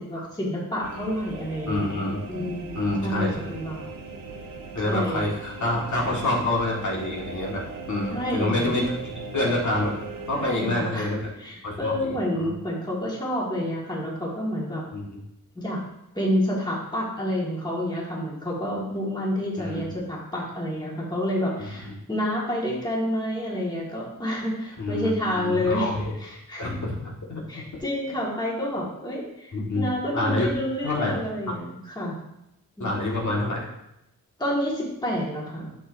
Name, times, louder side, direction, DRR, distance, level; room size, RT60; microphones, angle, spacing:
voice 1, 0.0-1.9 2.3-3.9 4.8-5.3 8.1-8.7 10.3-11.1 11.4-14.8 15.6-15.8 16.1-25.9 26.2-26.7 27.5-32.1 32.8-32.9 34.4-35.8, left 1 dB, 10° left, -4 dB, 1.8 m, -29 dB
sound 1, 0.8-10.6, right 4 dB, 75° right, 1.1 m, -39 dB
voice 2, 1.7-2.2 2.8-3.4 4.7-7.6 7.9-10.0 10.3-11.2 11.6-12.5 14.9-15.2 19.6-19.9 21.6-21.9 24.8-26.2 26.6-27.6 29.5-29.9 30.1-30.5 30.8-31.2 32.8-33.7, left 2 dB, 55° left, -3 dB, 1.7 m, -27 dB
11.5 x 6.5 x 2.7 m, 0.84 s
wide cardioid pair, 165°, 35 cm